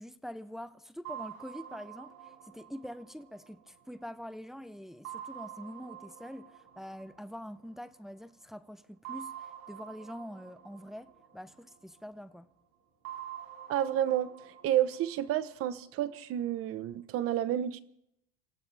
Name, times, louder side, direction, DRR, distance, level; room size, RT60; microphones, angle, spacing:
voice 1, 0.0-12.5, equal, ahead, 0.5 m, -45 dB
sound 1, 1.0-4.4 5.0-8.0 9.0-12.2 13.0-16.2, right 10 dB, 65° right, 5.1 m, -47 dB
voice 2, 13.7-17.8, right 11 dB, 50° right, 1.1 m, -30 dB
27.0 x 15.5 x 3.5 m
cardioid pair, 135°, 29 cm